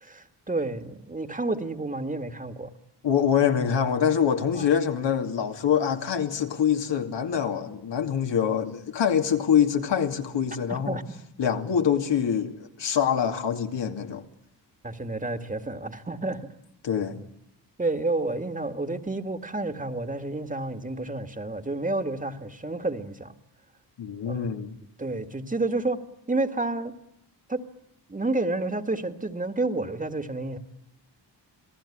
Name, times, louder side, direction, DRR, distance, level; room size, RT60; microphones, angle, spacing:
voice 1, 0.0-2.7 4.6-4.7 10.7-11.0 14.8-16.5 17.8-23.3 24.3-24.5 25.0-26.0 26.3-27.0 27.5-27.6 28.1-30.6, right 2 dB, 20° right, 1.8 m, -30 dB
voice 2, 3.0-11.0 11.4-14.2 16.8-17.2 24.0-24.7, left 8 dB, 75° left, 2.6 m, -25 dB
27.5 x 18.0 x 9.9 m
cardioid pair, 105°, 42 cm